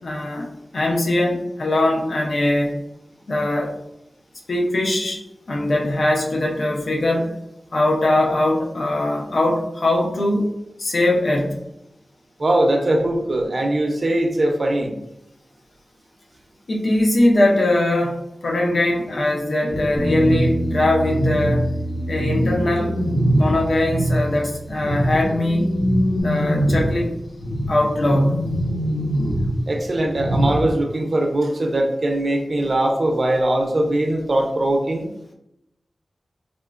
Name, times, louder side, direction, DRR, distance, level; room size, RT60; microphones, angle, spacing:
voice 1, 0.0-0.5 0.7-2.8 3.3-3.8 4.5-5.2 5.5-7.3 7.7-10.5 10.8-11.6 16.7-18.2 18.4-21.7 22.1-22.9 23.4-25.7 26.2-27.1 27.7-28.6, left 1 dB, 65° left, 0 dB, 0.6 m, -21 dB
voice 2, 12.4-14.9 29.7-35.1, right 1 dB, 55° right, 2 dB, 0.5 m, -21 dB
sound 1, 19.7-24.3 24.7-30.7, equal, 85° left, 1.1 m, -23 dB
Bass guitar, 20.0-24.7 25.0-26.2, right 1 dB, 15° left, 0.5 m, -29 dB
3.6 x 2.0 x 2.4 m, 0.81 s
wide cardioid pair, 70°, 0 cm